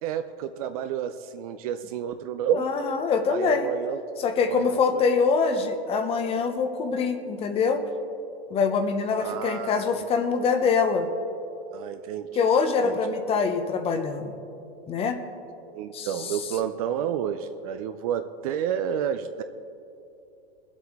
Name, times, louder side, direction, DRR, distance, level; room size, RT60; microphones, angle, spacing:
voice 1, 0.0-2.6 3.3-4.0 4.5-5.0 9.2-10.1 11.7-12.3 12.8-13.0 15.7-19.4, right 9 dB, 35° right, 9 dB, 0.4 m, -30 dB
voice 2, 2.5-3.7 4.2-7.8 8.5-11.1 12.4-14.4 14.9-15.2 15.9-16.3, left 5 dB, 20° left, 8 dB, 0.6 m, -24 dB
21.0 x 8.1 x 3.5 m, 2.7 s
supercardioid pair, 145°, 32 cm